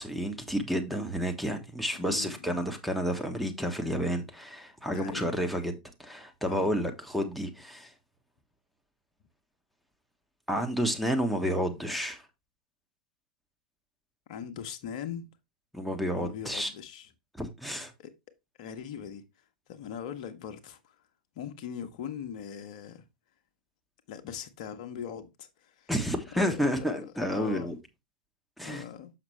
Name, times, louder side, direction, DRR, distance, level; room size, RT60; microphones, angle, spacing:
voice 1, 0.0-7.9 10.5-12.2 15.7-16.7 17.4-17.9 25.9-27.8 28.6-28.8, equal, ahead, 1.3 m, -30 dB
voice 2, 2.0-2.7 4.9-5.3 6.5-6.7 14.3-15.3 16.1-17.1 18.0-18.1 18.6-19.2 19.7-20.8 21.3-23.0 24.1-25.9 26.3-27.7 28.6-29.1, left 8 dB, 50° left, 1.1 m, -40 dB
7.1 x 6.0 x 3.3 m
figure-of-eight pair, 90°, 4 cm